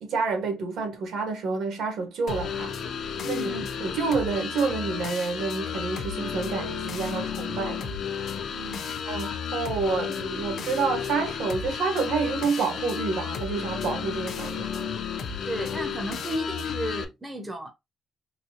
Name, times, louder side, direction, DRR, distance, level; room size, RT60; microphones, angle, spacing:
voice 1, 0.0-2.7 3.2-3.4 3.8-8.0 9.0-14.9, right 4 dB, 75° right, 1.4 m, -28 dB
sound 1, 2.3-17.0, left 7 dB, 55° left, 0.5 m, -32 dB
voice 2, 3.2-3.6 8.5-8.9 15.4-17.7, equal, 10° right, 0.6 m, -33 dB
3.9 x 2.3 x 2.8 m
cardioid pair, 175°, 0 cm